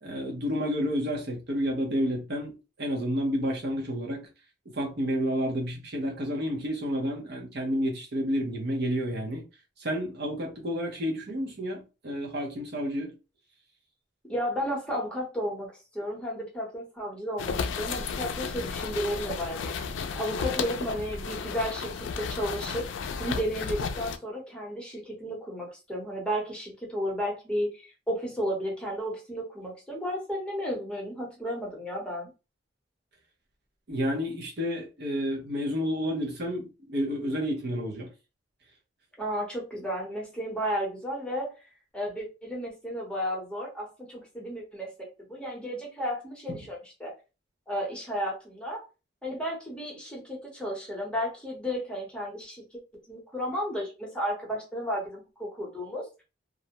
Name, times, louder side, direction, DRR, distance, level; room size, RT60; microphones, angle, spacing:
voice 1, 0.0-4.3 4.7-9.4 9.8-13.1 33.9-38.1, equal, 60° right, 0.7 m, -30 dB
voice 2, 14.3-22.9 23.2-32.3 39.2-41.6 41.9-44.9 45.3-47.1 47.7-48.8 49.2-52.8 53.1-56.2, equal, 5° left, 0.8 m, -33 dB
sound 1, 17.4-24.2, left 5 dB, 90° left, 0.3 m, -33 dB
2.5 x 2.1 x 2.8 m
head